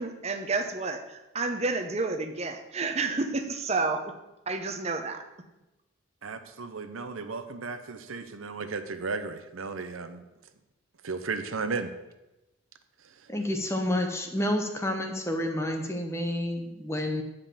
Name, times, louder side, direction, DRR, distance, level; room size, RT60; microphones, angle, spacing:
voice 1, 0.0-4.1 4.5-5.2, right 3 dB, 30° right, 6 dB, 0.8 m, -30 dB
voice 2, 6.2-10.2 11.0-11.9, right 4 dB, 85° right, 9 dB, 0.8 m, -34 dB
voice 3, 13.3-17.2, left 1 dB, 15° left, 4 dB, 1.0 m, -29 dB
9.6 x 5.2 x 7.3 m, 0.99 s
head